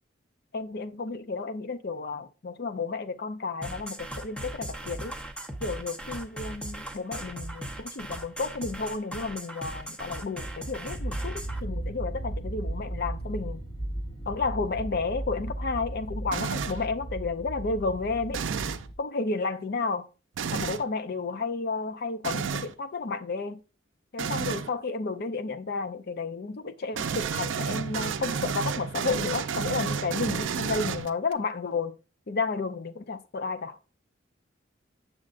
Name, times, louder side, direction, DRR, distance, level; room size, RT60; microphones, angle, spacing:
voice 1, 0.5-5.1 5.6-13.6 14.3-18.4 19.0-20.1 20.5-23.6 24.1-31.9 32.3-33.8, left 4 dB, 50° left, 0.5 m, -32 dB
sound 1, 3.6-11.6, right 1 dB, 5° left, 0.7 m, -38 dB
sound 2, 10.9-18.9, right 1 dB, 25° left, 1.1 m, -35 dB
sound 3, 16.3-16.9 18.3-18.9 20.4-20.8 22.2-22.7 24.2-24.7 26.9-31.3, right 6 dB, 75° right, 0.4 m, -31 dB
7.5 x 6.3 x 2.5 m
head